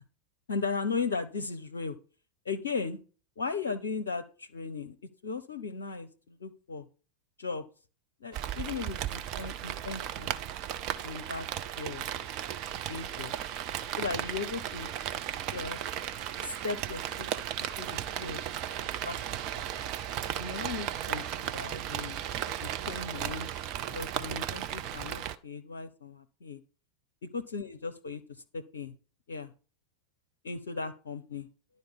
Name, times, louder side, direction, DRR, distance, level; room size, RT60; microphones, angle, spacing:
voice 1, 0.5-2.0 2.5-3.0 3.4-4.9 5.2-6.9 7.4-7.6 8.2-10.3 11.0-11.5 11.8-12.0 12.9-13.3 14.0-14.9 15.5-15.8 16.4-17.3 17.6-18.4 18.8-19.6 20.4-22.3 22.6-23.5 23.9-26.6 27.2-28.9 29.3-29.5 30.4-31.5, left 4 dB, 65° left, 10 dB, 0.6 m, -37 dB
Rain, 8.3-25.4, right 11 dB, 40° right, 0.7 m, -35 dB
11.0 x 4.2 x 6.9 m, 0.37 s
figure-of-eight pair, 90°, 0 cm